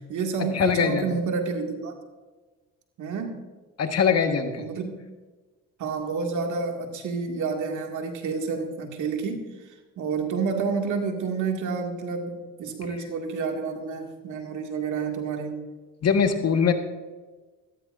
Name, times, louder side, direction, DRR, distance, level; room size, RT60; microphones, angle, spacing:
voice 1, 0.0-2.0 3.0-3.4 4.6-4.9 5.8-15.6, right 5 dB, 65° right, 2 dB, 2.3 m, -29 dB
voice 2, 0.5-1.1 3.8-4.6 16.0-16.7, left 6 dB, 50° left, 6 dB, 1.5 m, -22 dB
14.5 x 14.5 x 2.6 m, 1.3 s
supercardioid pair, 70°, 33 cm